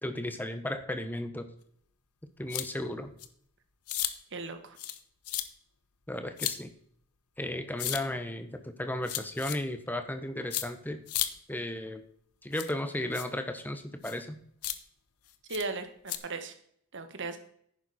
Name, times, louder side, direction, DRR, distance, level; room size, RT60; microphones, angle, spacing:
voice 1, 0.0-1.4 2.4-3.1 6.1-6.7 7.4-11.0 11.5-12.0 12.4-14.4, left 1 dB, 10° left, 8 dB, 1.0 m, -35 dB
sound 1, 2.5-2.7 3.2-3.3 3.9-4.1 4.8-5.0 5.2-5.4 6.4-6.6 7.8-8.0 9.0-9.6 10.5-10.6 11.1-11.3 12.5-12.7 13.1-13.3 14.0-14.2 14.6-14.8 15.5-15.6 16.1-16.2, left 13 dB, 90° left, 1.0 m, -33 dB
voice 2, 4.3-4.8 15.5-16.5 16.9-17.4, right 3 dB, 55° right, 8 dB, 1.5 m, -37 dB
11.0 x 9.2 x 4.2 m, 0.64 s
head